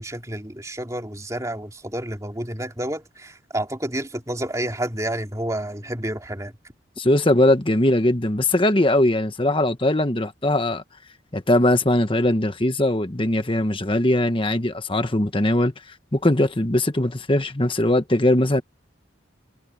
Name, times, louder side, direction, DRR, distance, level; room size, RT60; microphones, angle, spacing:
voice 1, 0.0-6.5, right 1 dB, 15° right, 3.2 m, -30 dB
voice 2, 7.0-10.8 11.3-15.7 16.1-18.6, left 1 dB, 25° left, 1.3 m, -20 dB
head